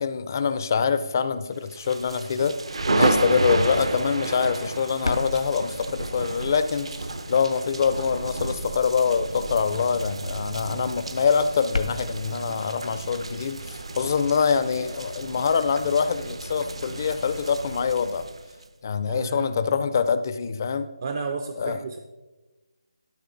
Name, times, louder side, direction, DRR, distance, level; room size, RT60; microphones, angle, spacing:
voice 1, 0.0-2.6 3.0-6.9 7.3-18.2 18.8-20.9 21.6-21.8, left 6 dB, 35° left, 12 dB, 0.5 m, -24 dB
sound 1, 1.7-18.7, right 2 dB, 75° right, 0.8 m, -31 dB
sound 2, 4.7-15.0, left 3 dB, 80° left, 0.8 m, -39 dB
voice 2, 19.1-19.6 21.0-22.0, right 4 dB, 35° right, 6 dB, 0.4 m, -32 dB
12.0 x 5.3 x 3.9 m, 1.1 s
figure-of-eight pair, 165°, 3 cm